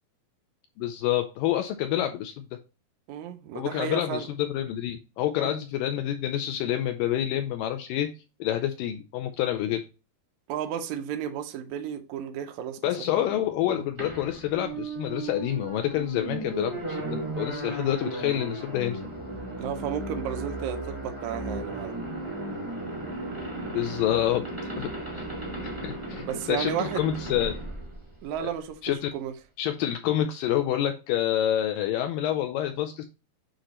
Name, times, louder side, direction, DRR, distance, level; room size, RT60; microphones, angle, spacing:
voice 1, 0.8-2.4 3.6-8.1 8.4-9.8 12.8-17.0 17.4-19.0 23.7-24.4 24.8-25.2 25.6-27.6 28.4-28.5 28.8-29.1 29.6-33.1, left 12 dB, 80° left, 2.0 m, -28 dB
voice 2, 3.1-4.3 5.4-5.6 10.5-13.8 19.5-21.9 26.2-27.0 28.2-29.3, right 9 dB, 85° right, 1.6 m, -33 dB
sound 1, 14.0-28.7, right 2 dB, 20° right, 0.8 m, -35 dB
8.8 x 3.1 x 4.2 m
omnidirectional pair, 4.4 m